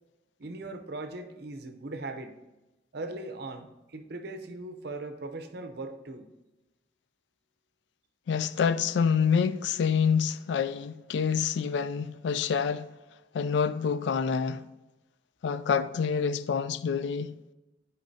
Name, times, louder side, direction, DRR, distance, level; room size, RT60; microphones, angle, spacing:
voice 1, 0.4-2.4 2.9-6.3, right 2 dB, 60° right, 0.6 m, -39 dB
voice 2, 8.3-12.9 13.3-14.6 15.4-17.4, left 6 dB, 70° left, 0.3 m, -27 dB
10.5 x 4.5 x 2.7 m
head